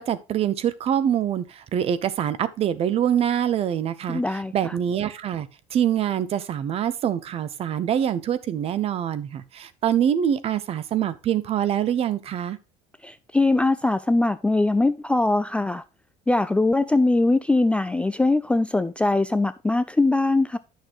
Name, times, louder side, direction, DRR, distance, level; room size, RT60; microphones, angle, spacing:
voice 1, 0.0-12.6, right 9 dB, 40° right, 0.7 m, -25 dB
voice 2, 4.1-4.7 13.0-15.8 16.3-20.6, left 2 dB, 10° left, 0.3 m, -21 dB
9.9 x 6.5 x 3.0 m
cardioid pair, 130°, 15 cm